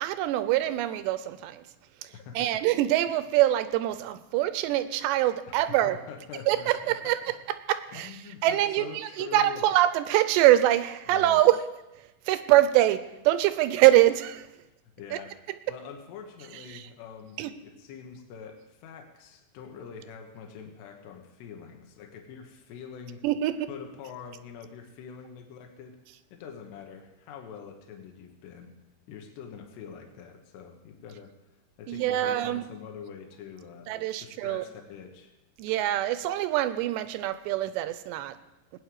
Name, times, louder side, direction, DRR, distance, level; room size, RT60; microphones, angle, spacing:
voice 1, 0.0-1.6 2.4-6.0 6.5-7.2 7.7-8.2 8.4-11.6 12.3-14.5 15.1-15.2 16.7-16.8 17.4-17.5 23.2-23.7 31.9-32.6 33.9-34.6 35.6-38.4, right 14 dB, 85° right, 12 dB, 2.8 m, -24 dB
voice 2, 2.1-2.6 5.5-7.3 7.9-9.7 11.1-11.4 15.0-15.4 15.7-23.2 23.7-26.0 26.3-28.7 29.1-31.3 31.8-33.9 34.2-35.3, left 7 dB, 80° left, 3 dB, 3.4 m, -44 dB
19.0 x 9.4 x 4.8 m, 0.96 s
omnidirectional pair, 5.0 m